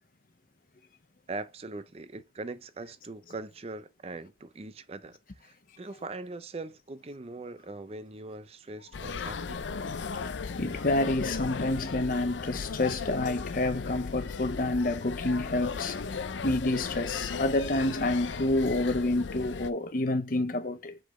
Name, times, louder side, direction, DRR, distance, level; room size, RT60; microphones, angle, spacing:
voice 1, 1.3-9.7, right 3 dB, 35° right, 0.5 m, -41 dB
sound 1, 8.9-19.7, left 5 dB, 85° left, 0.6 m, -36 dB
voice 2, 10.6-16.0 16.4-21.0, left 2 dB, 50° left, 0.8 m, -28 dB
7.6 x 4.1 x 3.1 m
head